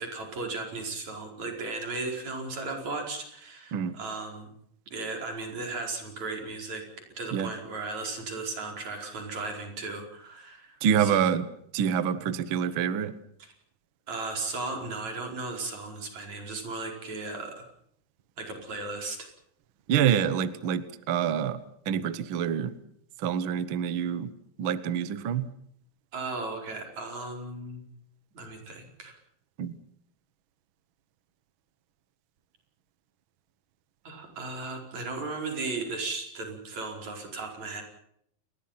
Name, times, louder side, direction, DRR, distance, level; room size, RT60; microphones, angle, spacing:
voice 1, 0.0-4.5 4.9-6.8 7.2-11.2 13.4-13.5 14.1-17.6 18.4-19.3 26.1-27.8 28.3-29.2 34.0-37.8, right 3 dB, 50° right, 2 dB, 6.1 m, -36 dB
voice 2, 10.8-11.5 11.7-13.1 19.9-21.6 21.8-22.7 23.2-24.3 24.6-25.5 29.6-29.8, right 8 dB, 75° right, 14 dB, 1.1 m, -26 dB
29.0 x 21.5 x 5.8 m, 0.71 s
omnidirectional pair, 4.1 m